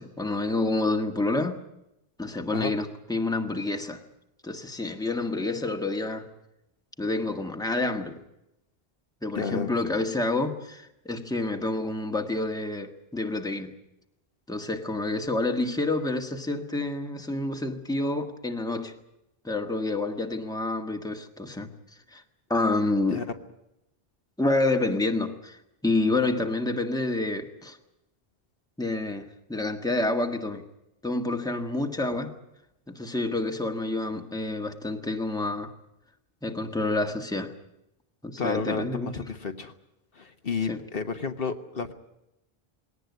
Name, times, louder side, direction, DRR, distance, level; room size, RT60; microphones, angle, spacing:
voice 1, 0.0-1.6 2.2-4.0 4.4-6.3 7.0-8.2 9.2-13.7 14.5-18.9 19.4-21.7 22.1-22.2 22.5-23.2 24.4-27.8 28.8-30.6 31.0-32.3 32.9-35.7 36.4-37.5 38.2-39.2 40.7-40.8, left 2 dB, 5° left, 4 dB, 1.5 m, -28 dB
voice 2, 9.3-9.7 23.1-23.2 38.4-39.7 40.1-41.9, left 5 dB, 65° left, 7 dB, 1.5 m, -31 dB
20.5 x 18.0 x 9.4 m, 0.88 s
omnidirectional pair, 1.0 m